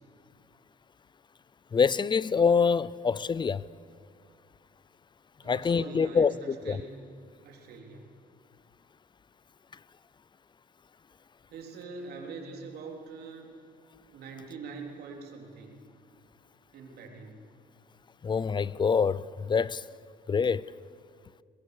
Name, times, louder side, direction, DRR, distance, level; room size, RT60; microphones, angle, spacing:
voice 1, 1.7-3.6 5.4-6.8 18.2-19.8 20.3-20.7, left 5 dB, 25° left, 0.5 m, -25 dB
voice 2, 5.4-6.9 7.4-8.1 11.5-13.5 14.1-15.8 16.7-17.4, right 4 dB, 70° right, 3.6 m, -43 dB
22.5 x 20.5 x 6.8 m
cardioid pair, 100°, 17 cm